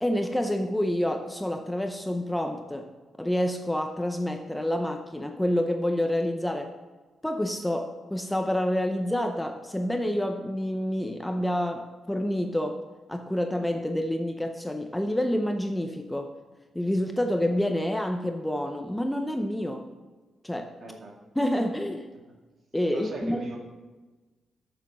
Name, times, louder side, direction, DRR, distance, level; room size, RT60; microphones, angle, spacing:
voice 1, 0.0-2.9 3.2-6.7 7.2-12.8 13.1-16.3 16.7-19.9 20.4-20.8 21.4-22.1 22.7-23.4, left 1 dB, 5° left, 5 dB, 0.5 m, -28 dB
voice 2, 20.8-21.1 22.9-23.6, right 2 dB, 45° right, 0 dB, 2.0 m, -37 dB
9.4 x 6.9 x 6.0 m, 1.3 s
wide cardioid pair, 150°, 0 cm